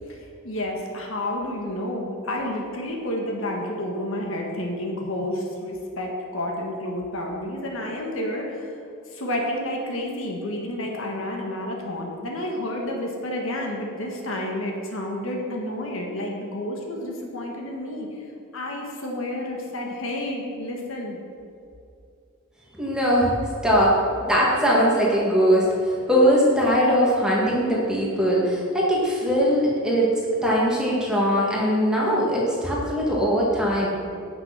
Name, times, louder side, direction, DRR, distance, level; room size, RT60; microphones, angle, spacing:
voice 1, 0.1-8.8 9.1-18.2 18.5-21.2, left 1 dB, 65° left, 0 dB, 1.5 m, -30 dB
voice 2, 22.8-23.3 23.6-23.9 24.3-25.7 26.1-30.1 30.4-33.9, equal, 5° right, -5 dB, 1.8 m, -20 dB
9.5 x 6.2 x 5.9 m, 2.6 s
head